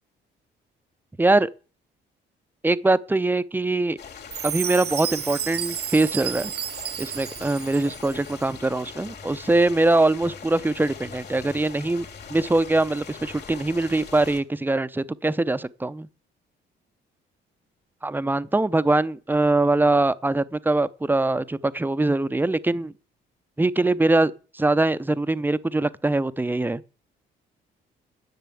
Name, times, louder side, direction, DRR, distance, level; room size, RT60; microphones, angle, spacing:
voice 1, 1.2-1.5 2.6-4.0 4.4-6.5 7.0-16.1 18.0-22.9 23.6-26.8, right 2 dB, 10° right, 0.6 m, -22 dB
sound 1, 4.0-14.4, left 6 dB, 55° left, 3.0 m, -42 dB
Chime, 4.3-8.3, right 11 dB, 55° right, 0.5 m, -32 dB
10.5 x 7.4 x 8.4 m
cardioid pair, 90°, 20 cm